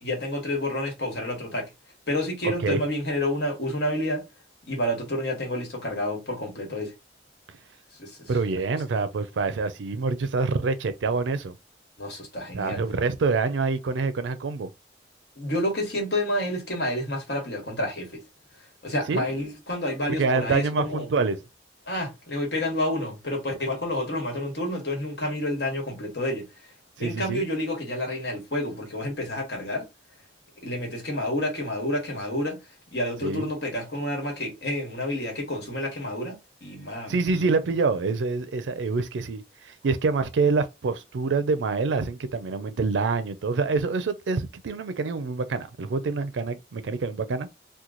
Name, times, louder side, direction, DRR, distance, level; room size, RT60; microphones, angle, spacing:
voice 1, 0.0-1.7 2.1-4.2 4.7-6.9 8.0-8.3 12.0-12.8 15.4-18.2 18.8-21.1 21.9-26.5 27.0-29.8 30.6-32.6 32.9-36.3 36.6-37.4, left 1 dB, 65° left, 1.4 m, -29 dB
voice 2, 2.4-2.8 8.3-11.5 12.5-14.7 19.1-19.3 20.1-21.4 27.0-27.4 33.2-33.5 37.1-47.5, right 4 dB, 85° right, 0.4 m, -26 dB
3.0 x 2.2 x 3.7 m
head